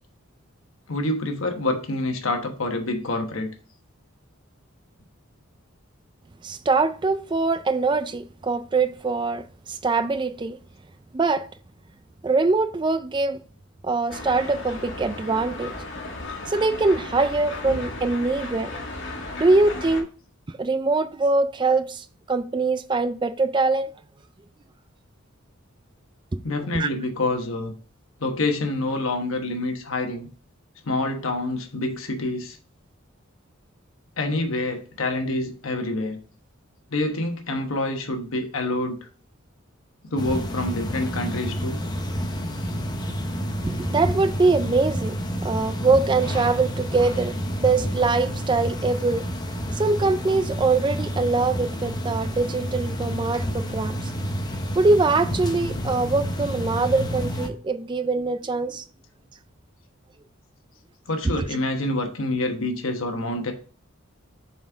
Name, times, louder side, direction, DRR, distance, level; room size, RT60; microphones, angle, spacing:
voice 1, 0.9-3.5 26.4-27.7 28.2-30.3 30.8-32.6 34.2-36.2 36.9-39.0 40.1-41.8 61.1-63.5, left 2 dB, 75° left, 1.1 m, -27 dB
voice 2, 6.4-10.6 11.1-11.5 12.2-13.4 13.8-15.7 16.5-18.7 19.4-20.1 20.6-23.9 26.3-26.4 26.7-26.9 43.6-45.2 45.4-47.3 47.6-49.2 49.8-54.1 54.8-58.8 61.2-61.4, right 3 dB, 20° right, 0.4 m, -23 dB
sound 1, 14.1-20.0, left 2 dB, 60° left, 1.6 m, -35 dB
sound 2, 40.2-57.5, equal, 20° left, 0.7 m, -29 dB
7.1 x 4.3 x 3.4 m
head